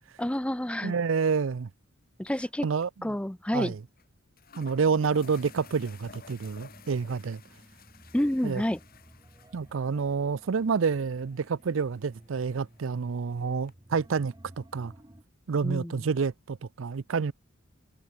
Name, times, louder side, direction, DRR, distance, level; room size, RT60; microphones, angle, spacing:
voice 1, 0.2-0.9 2.2-2.6 3.0-3.7 8.1-8.8 15.6-16.0, left 1 dB, 5° left, 0.5 m, -29 dB
voice 2, 0.8-1.7 2.6-2.9 3.5-3.8 4.6-7.4 8.4-8.6 9.5-14.9 15.5-17.3, right 5 dB, 70° right, 0.5 m, -28 dB
sound 1, 2.3-2.6 2.8-2.9 4.0-4.1 4.4-13.7, left 6 dB, 50° left, 2.4 m, -55 dB
sound 2, 4.8-15.2, right 1 dB, 20° right, 1.2 m, -54 dB
head